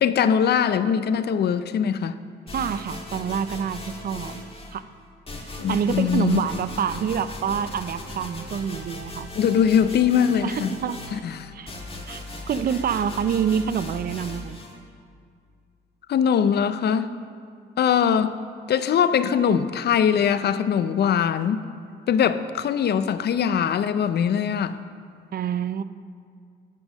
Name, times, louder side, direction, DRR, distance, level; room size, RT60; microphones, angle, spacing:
voice 1, 0.0-2.2 5.6-6.4 9.4-10.8 11.1-11.5 16.1-17.1 17.8-21.6 22.1-24.8, left 8 dB, 55° left, 13 dB, 0.5 m, -22 dB
sound 1, 2.5-4.8 5.3-14.8, left 1 dB, 30° left, 2.0 m, -38 dB
voice 2, 2.5-4.4 4.7-4.8 5.7-9.3 10.4-11.0 11.5-11.7 12.1-14.6 25.3-25.8, right 8 dB, 50° right, 14 dB, 0.5 m, -27 dB
16.0 x 5.4 x 6.3 m, 2.2 s
cardioid pair, 90°, 20 cm